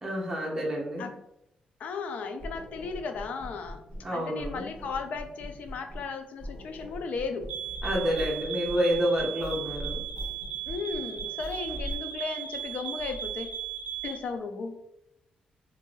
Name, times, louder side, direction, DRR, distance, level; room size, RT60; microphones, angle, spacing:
voice 1, 0.0-1.1 4.0-4.7 7.8-10.0, equal, 15° right, -3 dB, 0.7 m, -29 dB
voice 2, 1.8-3.8 4.1-7.5 10.7-13.5 14.0-14.8, left 4 dB, 70° left, 6 dB, 0.4 m, -35 dB
sound 1, 2.4-4.1 4.4-6.1 6.4-12.0, equal, 40° left, 1.0 m, -41 dB
sound 2, 7.5-14.2, right 10 dB, 70° right, 0.5 m, -37 dB
2.7 x 2.5 x 3.0 m, 0.81 s
wide cardioid pair, 160°, 3 cm